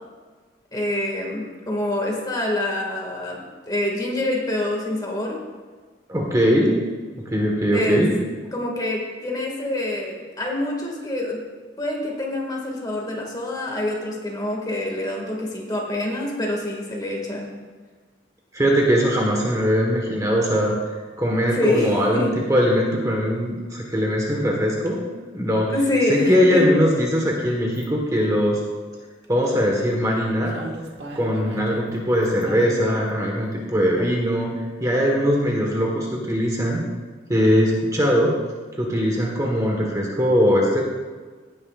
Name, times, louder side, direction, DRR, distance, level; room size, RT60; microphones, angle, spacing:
voice 1, 0.7-5.4 7.7-8.1 8.5-11.4 11.8-17.5 21.5-22.3 25.7-26.7, left 1 dB, 20° left, -1 dB, 2.0 m, -26 dB
voice 2, 6.1-6.8 7.1-8.1 18.5-20.8 21.2-25.0 25.3-25.7 26.1-28.6 29.3-30.6 31.1-34.5 34.8-36.8 37.3-38.3 38.8-40.8, equal, 20° right, -1 dB, 1.3 m, -21 dB
sound 1, 27.7-27.9 29.2-29.5 30.2-30.3 30.5-32.0 32.2-33.0 34.0-34.1, right 1 dB, 60° right, 1.6 m, -36 dB
16.5 x 9.7 x 2.4 m, 1.4 s
head